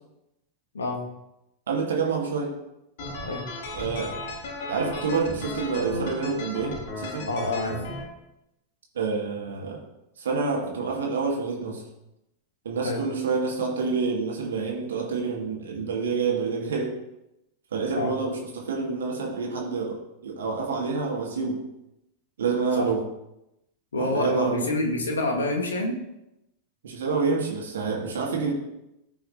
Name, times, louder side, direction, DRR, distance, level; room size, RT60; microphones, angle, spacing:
voice 1, 1.7-2.6 3.7-4.1 4.7-7.3 8.9-9.8 10.2-11.8 12.6-16.9 17.7-21.6 22.4-23.0 24.0-24.7 26.8-28.5, right 4 dB, 65° right, -1 dB, 2.0 m, -28 dB
sound 1, 3.0-8.0, left 2 dB, 50° left, 2.2 m, -35 dB
voice 2, 7.3-7.8 12.8-13.0 17.9-18.1 22.7-22.9 23.9-26.0, left 2 dB, 70° left, 1 dB, 1.7 m, -27 dB
14.5 x 5.6 x 2.7 m, 0.88 s
figure-of-eight pair, 90°, 0 cm